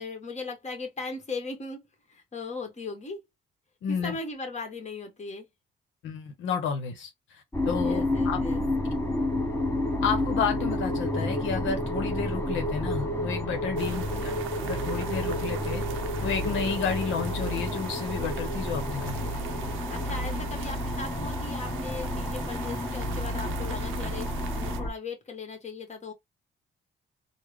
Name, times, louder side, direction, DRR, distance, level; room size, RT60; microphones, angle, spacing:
voice 1, 0.0-1.8 2.1-3.2 3.9-5.5 7.8-8.6 13.9-14.3 19.9-24.3 24.5-26.1, left 4 dB, 35° left, 1.4 m, -38 dB
voice 2, 3.8-4.2 6.0-8.4 10.0-15.8 16.2-19.5, left 6 dB, 80° left, 0.9 m, -31 dB
sound 1, 7.5-24.9, left 1 dB, 10° left, 1.0 m, -30 dB
sound 2, 13.8-24.8, right 10 dB, 90° right, 0.6 m, -42 dB
3.6 x 2.1 x 3.2 m
cardioid pair, 90°, 20 cm